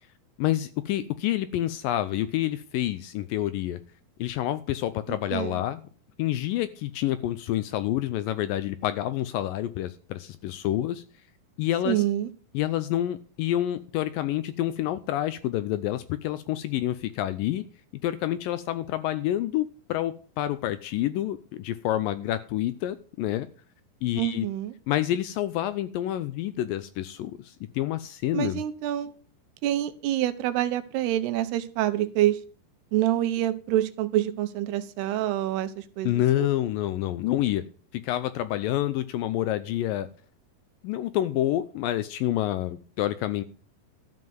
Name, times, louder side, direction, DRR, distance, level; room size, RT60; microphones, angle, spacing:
voice 1, 0.4-3.8 4.2-5.8 6.2-11.0 11.6-12.0 12.5-17.6 18.0-23.5 24.0-24.5 24.9-28.6 36.0-37.6 37.9-40.1 40.8-43.4, left 13 dB, 80° left, 2.1 m, -28 dB
voice 2, 11.9-12.3 24.2-24.7 28.3-29.1 29.6-32.4 32.9-36.1 36.4-36.5, right 13 dB, 90° right, 3.0 m, -26 dB
13.0 x 5.6 x 7.8 m
omnidirectional pair, 4.5 m